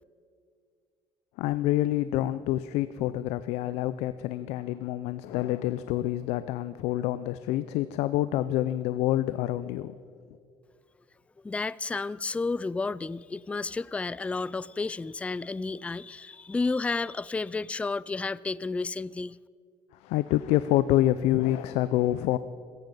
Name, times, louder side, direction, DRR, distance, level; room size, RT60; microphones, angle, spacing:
voice 1, 1.4-9.9 20.0-22.4, left 14 dB, 85° left, 14 dB, 0.5 m, -27 dB
voice 2, 11.4-19.4, left 3 dB, 10° left, 20 dB, 0.3 m, -31 dB
17.5 x 15.0 x 5.4 m, 2.3 s
cardioid pair, 95°, 11 cm